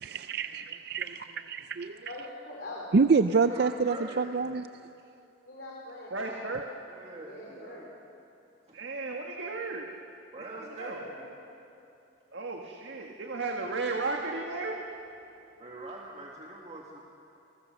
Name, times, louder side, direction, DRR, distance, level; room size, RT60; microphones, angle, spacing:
voice 1, 0.0-2.1 2.9-4.7, right 4 dB, 60° right, 11 dB, 0.5 m, -27 dB
voice 2, 2.1-2.9 5.5-6.3 7.2-7.9 10.5-10.6 10.9-11.3, left 2 dB, 65° left, -3 dB, 4.0 m, -43 dB
voice 3, 3.3-4.4 6.9-7.9 8.7-8.8 10.3-11.2 13.6-13.7 15.6-17.0, right 2 dB, 35° right, -2 dB, 1.8 m, -44 dB
voice 4, 6.1-6.7 8.7-9.9 10.4-11.0 12.3-14.8, right 3 dB, 85° right, 1 dB, 1.6 m, -34 dB
28.5 x 20.5 x 6.6 m, 2.8 s
head